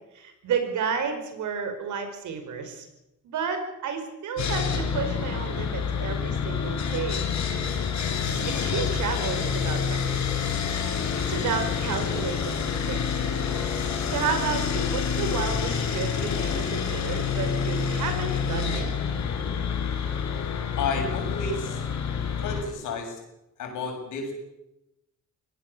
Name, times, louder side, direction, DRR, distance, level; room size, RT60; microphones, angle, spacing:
voice 1, 0.1-2.9 3.2-7.2 8.5-10.5 11.3-12.6 12.9-13.0 14.1-18.9, right 6 dB, 80° right, 7 dB, 5.3 m, -31 dB
Sawing, 4.4-22.6, left 6 dB, 65° left, 4.6 m, -28 dB
voice 2, 20.8-21.9 22.4-23.2 23.6-24.3, left 4 dB, 80° left, 3 dB, 7.0 m, -31 dB
25.0 x 18.0 x 7.0 m, 0.89 s
cardioid pair, 90°, 30 cm